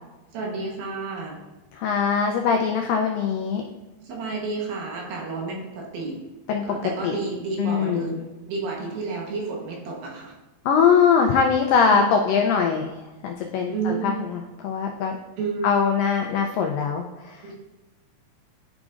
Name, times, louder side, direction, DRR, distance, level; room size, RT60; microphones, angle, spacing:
voice 1, 0.3-1.4 4.0-6.2 6.7-8.2 8.5-10.3 11.9-12.1 13.7-14.2 15.4-15.7 17.4-17.5, right 4 dB, 75° right, -2 dB, 2.8 m, -30 dB
voice 2, 1.7-3.6 6.5-7.2 7.6-8.3 10.7-13.0 13.2-15.2 15.6-17.4, left 6 dB, 85° left, 2 dB, 1.9 m, -22 dB
10.5 x 5.0 x 2.4 m, 1.1 s
omnidirectional pair, 4.4 m